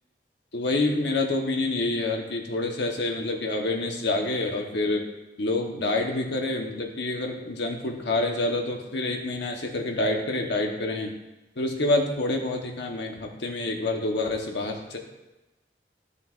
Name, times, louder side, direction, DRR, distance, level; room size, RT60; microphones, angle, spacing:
voice 1, 0.5-5.0 5.4-11.1 11.6-15.0, left 2 dB, 85° left, 1 dB, 1.2 m, -27 dB
13.0 x 6.6 x 2.6 m, 1.0 s
head